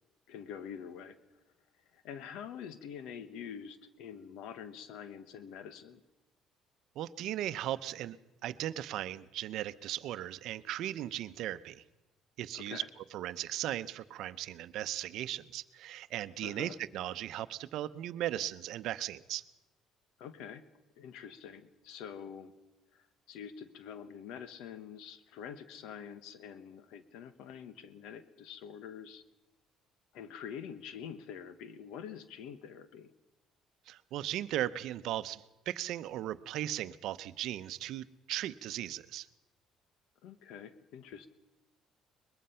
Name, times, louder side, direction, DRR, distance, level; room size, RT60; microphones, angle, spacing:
voice 1, 0.3-1.2 1.9-6.0 12.5-12.9 16.4-16.8 20.2-20.6 21.0-22.5 22.9-29.2 30.1-33.1 40.2-41.3, left 8 dB, 85° left, 12 dB, 1.2 m, -46 dB
voice 2, 7.0-8.2 8.4-11.8 12.4-12.8 13.1-19.4 33.9-39.3, right 13 dB, 65° right, 14 dB, 0.7 m, -37 dB
22.5 x 21.5 x 5.7 m, 1.0 s
cardioid pair, 155°, 0 cm